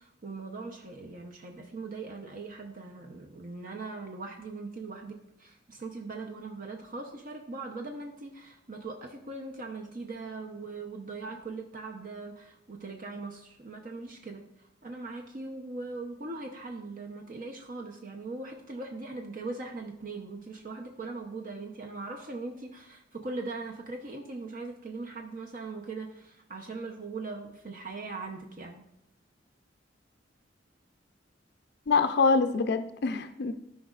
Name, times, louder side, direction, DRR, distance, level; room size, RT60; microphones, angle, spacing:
voice 1, 0.0-14.4 14.8-28.8, right 3 dB, 45° right, 2 dB, 0.7 m, -40 dB
voice 2, 31.9-33.5, left 4 dB, 60° left, 8 dB, 0.4 m, -25 dB
13.5 x 5.2 x 2.4 m, 0.79 s
head